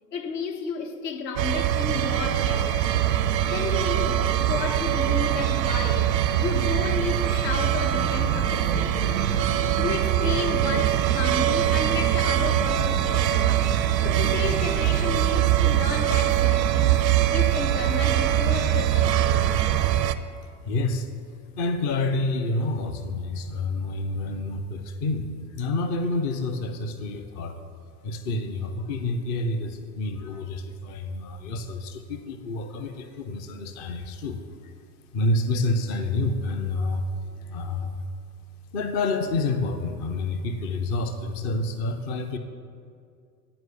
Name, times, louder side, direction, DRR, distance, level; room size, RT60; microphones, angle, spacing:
voice 1, 0.1-3.1 3.5-9.2 9.5-13.6 14.0-17.0 17.3-19.6 30.2-30.4 37.3-37.4, left 5 dB, 70° left, 1.3 m, -32 dB
sound 1, 1.4-20.1, right 11 dB, 80° right, 0.6 m, -23 dB
voice 2, 20.6-21.1 21.6-27.5 28.0-34.7 35.1-37.1 37.5-38.0 38.7-42.4, left 2 dB, 25° left, 0.3 m, -28 dB
9.9 x 4.6 x 6.8 m
hypercardioid pair, 95°, 50 cm